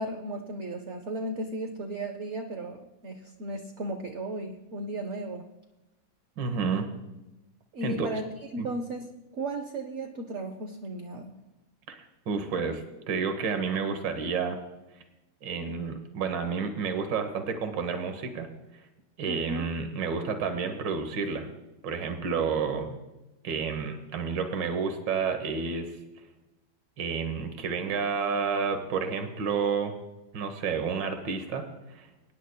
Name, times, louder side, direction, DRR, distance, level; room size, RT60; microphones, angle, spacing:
voice 1, 0.0-5.4 7.7-11.3 19.2-19.7, right 1 dB, 55° right, 4 dB, 0.8 m, -35 dB
voice 2, 6.4-6.9 7.8-8.1 8.6-8.7 11.9-14.6 15.4-18.5 19.2-21.5 21.8-23.0 23.4-25.9 27.0-29.9 30.3-32.1, right 5 dB, 75° right, 7 dB, 1.8 m, -30 dB
24.0 x 9.8 x 2.2 m, 1.0 s
omnidirectional pair, 2.0 m